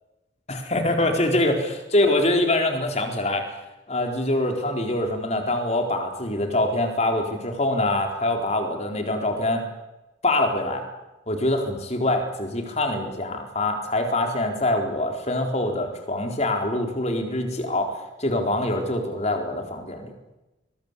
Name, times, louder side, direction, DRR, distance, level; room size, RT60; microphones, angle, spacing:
voice 1, 0.5-1.6 1.9-3.5 3.9-9.6 10.2-10.8 11.3-20.1, left 1 dB, 35° left, 4 dB, 4.2 m, -24 dB
23.0 x 22.0 x 8.4 m, 1.0 s
head